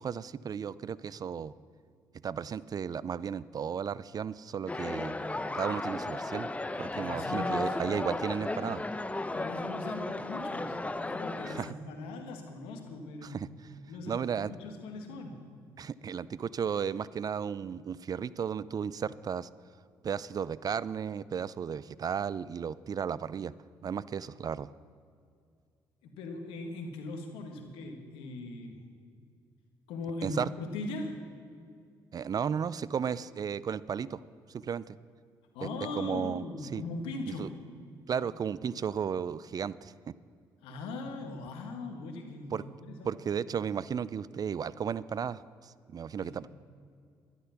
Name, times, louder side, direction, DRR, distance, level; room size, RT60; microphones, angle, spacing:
voice 1, 0.0-1.5 2.2-5.2 5.5-6.5 6.8-8.8 11.4-11.7 13.2-13.5 14.1-14.5 15.8-19.5 20.0-23.5 23.8-24.7 30.2-30.5 32.1-34.2 34.5-35.0 35.6-35.7 36.0-36.4 36.7-36.8 37.3-37.5 38.1-40.1 42.5-42.6 43.0-46.5, right 7 dB, 45° right, 19 dB, 0.4 m, -34 dB
sound 1, 4.7-11.7, left 2 dB, 15° left, 0.8 m, -35 dB
voice 2, 6.9-7.8 9.3-10.8 11.1-15.4 26.0-28.8 29.9-31.2 35.5-37.6 40.6-43.1 46.2-46.4, left 2 dB, 80° left, 4 dB, 1.8 m, -40 dB
12.0 x 11.5 x 5.9 m, 2.3 s
supercardioid pair, 60°, 9 cm